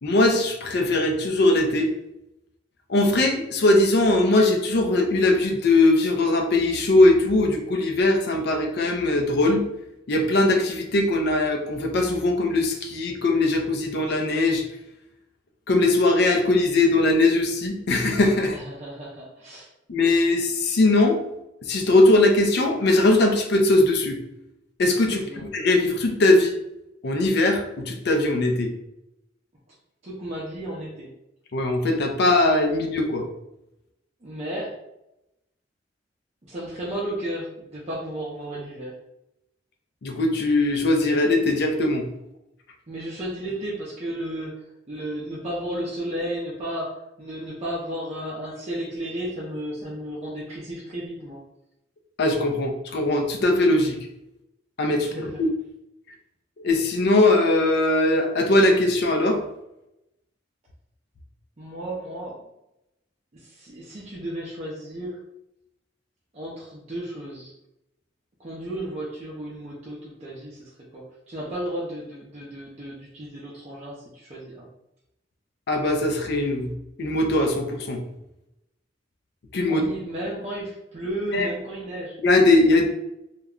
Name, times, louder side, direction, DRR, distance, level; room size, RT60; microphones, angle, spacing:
voice 1, 0.0-1.9 2.9-9.7 10.1-14.6 15.7-18.6 19.9-21.2 21.6-24.2 24.8-25.3 25.5-26.5 27.0-28.7 31.5-33.2 40.0-42.0 52.2-54.0 54.8-55.5 56.6-59.4 75.7-76.7 77.0-78.0 79.5-79.8 81.3-81.5 82.2-82.9, left 2 dB, 60° left, 4 dB, 0.5 m, -20 dB
voice 2, 18.5-19.7 25.1-25.4 30.0-31.1 34.2-34.7 36.5-38.9 42.9-44.5 44.9-46.9 47.2-51.4 55.0-55.4 61.6-62.3 63.3-65.2 66.3-67.5 68.4-74.7 79.7-82.2, right 1 dB, 35° right, -5 dB, 0.5 m, -33 dB
2.3 x 2.1 x 3.5 m, 0.87 s
head